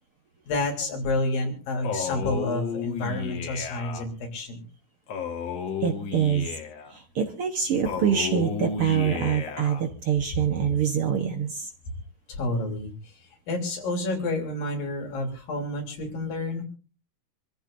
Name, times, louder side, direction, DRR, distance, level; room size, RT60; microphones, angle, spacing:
voice 1, 0.5-4.7 12.3-13.1 13.5-16.6, left 2 dB, 85° left, 2 dB, 5.2 m, -29 dB
Male speech man speaking, 1.8-4.0 5.1-6.9 7.8-9.8, left 6 dB, 55° left, 2.6 m, -32 dB
voice 2, 5.8-6.5 6.9-11.7, right 8 dB, 55° right, 5 dB, 1.7 m, -25 dB
26.5 x 14.5 x 2.6 m, 0.36 s
omnidirectional pair, 3.8 m